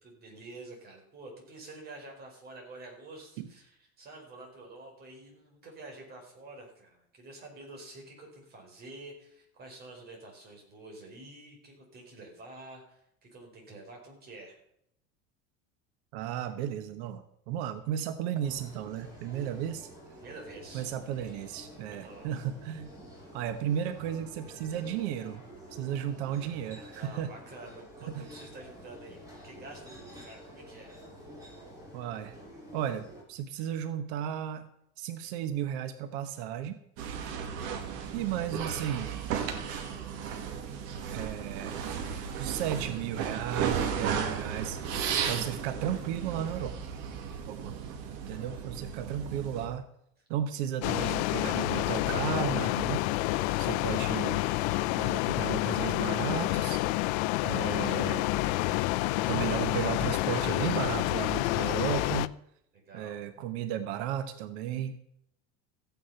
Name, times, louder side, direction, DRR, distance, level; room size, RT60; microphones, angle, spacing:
voice 1, 0.0-14.6 19.4-19.7 20.2-20.8 21.2-21.6 22.0-22.3 26.9-31.0 33.5-33.8 48.3-48.6 62.7-63.2, right 2 dB, 30° right, 1 dB, 4.8 m, -48 dB
voice 2, 16.1-19.9 20.7-22.9 23.3-25.4 25.7-27.3 28.1-28.3 31.9-32.3 32.7-34.7 35.0-37.2 38.1-39.1 41.1-41.8 42.4-44.8 45.2-46.7 47.5-47.7 48.3-49.9 50.3-53.0 53.6-54.4 55.0-56.8 57.4-58.3 59.3-62.3 62.9-65.0, right 10 dB, 90° right, 10 dB, 1.1 m, -34 dB
sound 1, 18.4-33.2, equal, 10° right, 4.7 m, -49 dB
sound 2, 37.0-49.7, right 7 dB, 65° right, 2.2 m, -35 dB
sound 3, 50.8-62.3, left 18 dB, 80° left, 0.6 m, -28 dB
15.0 x 9.5 x 5.7 m, 0.75 s
cardioid pair, 165°, 31 cm